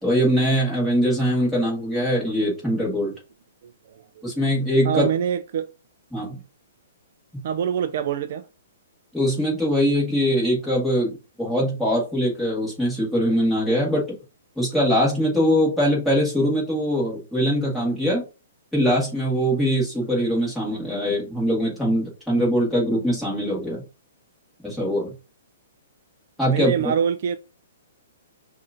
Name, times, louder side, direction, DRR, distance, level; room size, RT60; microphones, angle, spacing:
voice 1, 0.0-3.1 4.2-5.1 6.1-6.4 9.1-11.1 11.4-14.0 14.6-18.2 18.7-23.8 24.6-25.1 26.4-26.9, equal, ahead, 1.6 m, -22 dB
voice 2, 4.8-5.7 7.4-8.5 26.5-27.4, right 8 dB, 50° right, 0.3 m, -24 dB
5.7 x 2.5 x 2.6 m
hypercardioid pair, 165°, 0 cm